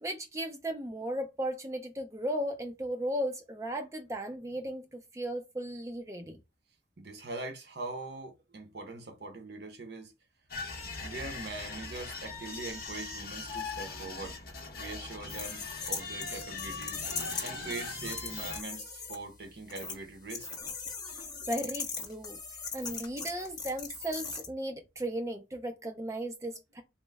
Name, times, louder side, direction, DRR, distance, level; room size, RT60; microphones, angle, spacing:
voice 1, 0.0-6.4 21.1-22.4 22.7-26.8, right 1 dB, 15° right, 0.4 m, -36 dB
voice 2, 7.0-10.1 11.0-14.4 14.8-20.5, right 3 dB, 60° right, 0.8 m, -42 dB
sound 1, 10.5-18.6, left 4 dB, 50° left, 0.7 m, -41 dB
sound 2, 15.3-19.1 19.7-20.0 20.3-24.5, left 5 dB, 20° left, 0.7 m, -39 dB
2.9 x 2.0 x 3.3 m
head